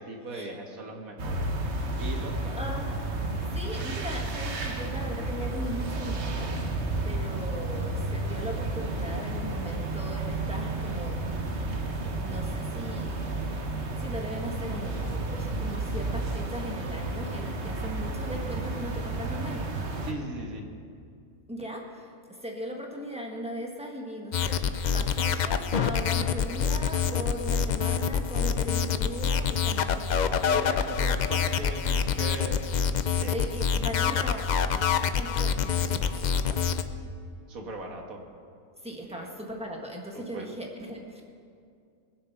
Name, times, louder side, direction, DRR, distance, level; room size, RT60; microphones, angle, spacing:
voice 1, 0.1-1.5 2.0-2.7 20.0-20.6 30.5-32.6 33.2-33.4 37.5-38.2 39.1-39.3 40.1-40.5, right 2 dB, 75° right, 2 dB, 2.0 m, -38 dB
sound 1, 1.2-20.1, right 2 dB, 55° right, 1.4 m, -32 dB
voice 2, 2.5-3.1 3.5-6.5 7.0-11.2 12.1-13.5 14.0-19.7 21.5-30.4 33.3-36.7 38.8-41.2, equal, 5° right, 0 dB, 1.5 m, -38 dB
sound 2, 24.3-36.8, left 7 dB, 85° left, 0.4 m, -26 dB
21.0 x 7.6 x 5.9 m, 2.4 s
omnidirectional pair, 1.5 m